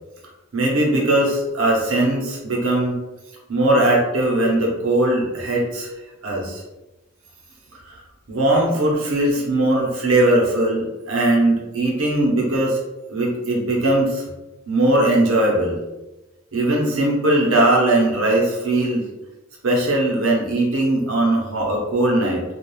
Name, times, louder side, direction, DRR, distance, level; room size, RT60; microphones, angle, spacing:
voice 1, 0.5-3.0 3.5-5.9 6.2-6.6 7.9-8.0 8.3-12.8 13.1-14.2 14.7-15.8 16.5-19.0 19.6-22.4, right 1 dB, 80° right, -2 dB, 0.8 m, -19 dB
3.0 x 2.4 x 2.3 m, 1.0 s
head